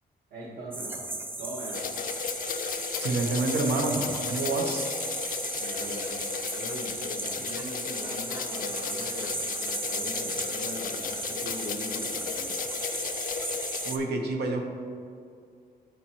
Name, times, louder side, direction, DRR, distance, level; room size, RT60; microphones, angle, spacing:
voice 1, 0.3-1.1 1.4-1.8 5.6-6.3 6.5-12.5, equal, 55° right, -7 dB, 1.6 m, -40 dB
sound 1, 0.7-14.0, right 2 dB, 10° right, 0.4 m, -35 dB
sound 2, 1.7-13.9, left 7 dB, 55° left, 0.4 m, -35 dB
voice 2, 3.0-4.9 13.9-14.6, right 3 dB, 80° right, 2 dB, 0.8 m, -28 dB
11.5 x 4.4 x 3.1 m, 2.4 s
wide cardioid pair, 175°, 17 cm